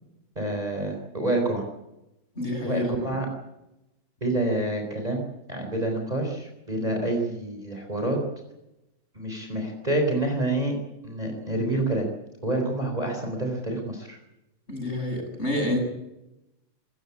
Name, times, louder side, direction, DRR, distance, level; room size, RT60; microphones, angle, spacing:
voice 1, 0.4-1.6 2.6-3.3 4.2-5.2 5.5-8.2 9.1-10.8 11.0-12.1 12.4-14.2, right 1 dB, 20° right, 3 dB, 4.1 m, -27 dB
voice 2, 2.3-3.1 14.7-15.8, left 1 dB, 30° left, 2 dB, 7.6 m, -28 dB
25.5 x 15.0 x 8.4 m, 0.93 s
omnidirectional pair, 2.3 m